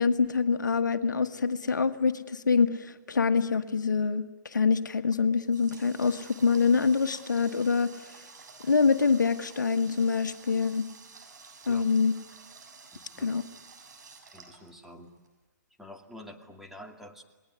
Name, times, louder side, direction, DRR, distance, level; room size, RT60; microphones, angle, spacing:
voice 1, 0.0-8.1 8.6-10.9 11.7-12.1 13.2-13.4, left 5 dB, 80° left, 9 dB, 1.5 m, -25 dB
Water tap faucet, 5.1-15.3, right 4 dB, 70° right, 7.4 m, -51 dB
voice 2, 12.9-13.3 14.3-15.1 15.8-17.2, left 1 dB, 5° right, 2 dB, 2.5 m, -47 dB
29.5 x 20.5 x 9.5 m, 1.2 s
hypercardioid pair, 130°, 10 cm